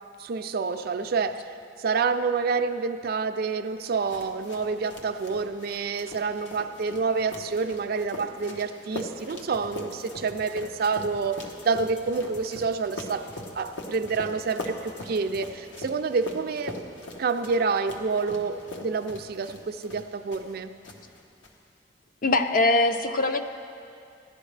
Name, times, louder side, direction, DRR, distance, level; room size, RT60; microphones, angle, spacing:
voice 1, 0.2-1.5 1.8-13.3 13.6-16.8 17.2-20.8, right 4 dB, 55° right, 9 dB, 0.4 m, -28 dB
sound 1, 3.8-20.6 20.8-21.5, left 1 dB, 85° left, 1.2 m, -41 dB
sound 2, 9.5-15.4, left 1 dB, 65° left, 1.8 m, -49 dB
voice 2, 22.2-23.4, left 2 dB, 45° left, 7 dB, 0.5 m, -22 dB
16.5 x 11.5 x 3.3 m, 2.5 s
head